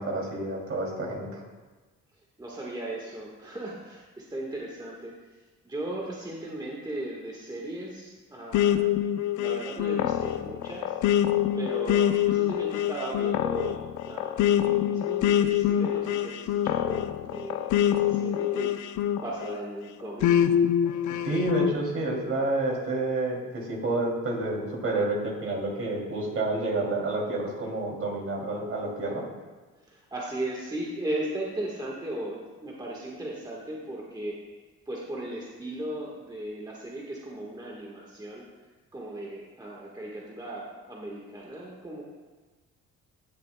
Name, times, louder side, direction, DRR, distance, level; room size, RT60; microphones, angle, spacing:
voice 1, 0.0-1.4 21.2-29.2, right 2 dB, 45° right, -2 dB, 2.8 m, -29 dB
voice 2, 2.4-5.1 5.6-8.9 9.3-13.8 14.0-18.7 19.2-20.3 29.9-34.4 34.9-38.4 38.9-42.0, right 1 dB, 15° right, -3 dB, 1.5 m, -37 dB
sound 1, 8.5-19.6 20.2-21.8, left 10 dB, 80° left, 0.5 m, -25 dB
17.0 x 6.7 x 2.3 m, 1.3 s
cardioid pair, 90°, 30 cm